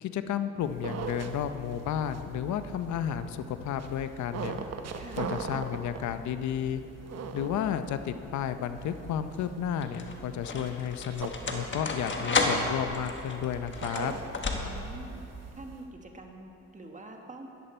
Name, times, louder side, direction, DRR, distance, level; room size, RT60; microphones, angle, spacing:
voice 1, 0.0-4.6 5.2-6.8 7.3-14.1, left 9 dB, 70° left, 10 dB, 0.7 m, -32 dB
sound 1, 0.6-15.9, right 6 dB, 55° right, 1.0 m, -41 dB
voice 2, 4.9-5.3 14.6-15.2 15.5-17.5, right 2 dB, 25° right, 3 dB, 1.3 m, -45 dB
sound 2, 8.2-8.7 9.6-15.1, left 3 dB, 40° left, 1.3 m, -32 dB
13.5 x 10.5 x 4.4 m, 3.0 s
cardioid pair, 90°, 30 cm